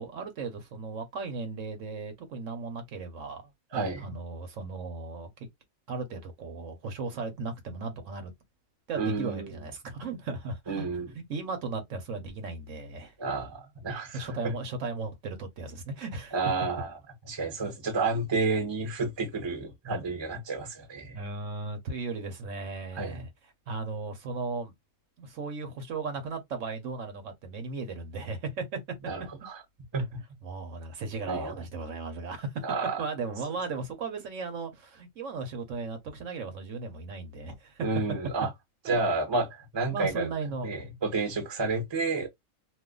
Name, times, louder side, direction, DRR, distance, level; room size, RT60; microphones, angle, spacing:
voice 1, 0.0-3.4 3.7-5.5 5.9-8.3 8.9-13.1 14.1-16.4 21.1-24.7 25.2-28.8 30.4-32.6 33.0-37.9 38.8-39.0 39.9-40.8, right 4 dB, 65° right, 1.1 m, -36 dB
voice 2, 3.7-4.0 9.0-9.5 10.7-11.1 13.2-14.3 16.3-17.0 17.3-21.2 23.0-23.2 29.1-29.6 29.9-30.0 31.2-31.5 32.6-33.0 37.8-38.5 38.9-40.3 40.6-42.3, right 3 dB, 25° right, 0.7 m, -30 dB
2.5 x 2.4 x 3.7 m
omnidirectional pair, 1.5 m